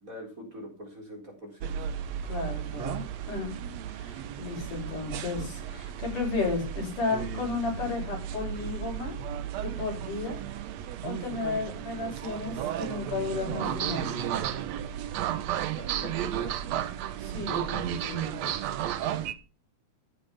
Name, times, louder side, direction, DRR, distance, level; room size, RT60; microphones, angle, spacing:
voice 1, 0.0-1.9 15.8-16.6, equal, 25° right, 1 dB, 4.4 m, -43 dB
sound 1, 1.6-19.3, right 10 dB, 65° right, 1.9 m, -34 dB
voice 2, 2.2-3.5 3.9-9.2 9.5-10.4 11.0-14.2 17.2-18.5, left 4 dB, 75° left, -2 dB, 9.7 m, -33 dB
14.5 x 8.7 x 5.7 m, 0.33 s
omnidirectional pair, 3.6 m